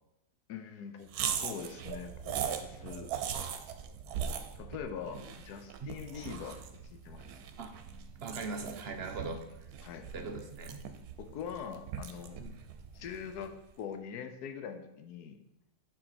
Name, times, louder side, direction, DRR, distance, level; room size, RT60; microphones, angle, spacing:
voice 1, 0.5-3.1 4.6-6.6 6.9-7.5 9.8-10.1 11.2-12.4 12.9-15.4, left 7 dB, 90° left, 8 dB, 1.2 m, -43 dB
sound 1, 1.1-13.6, right 8 dB, 75° right, 1.1 m, -40 dB
voice 2, 8.2-9.4 10.1-10.8 12.4-12.5, right 4 dB, 55° right, 5 dB, 0.8 m, -40 dB
7.3 x 4.7 x 4.1 m, 0.86 s
omnidirectional pair, 1.6 m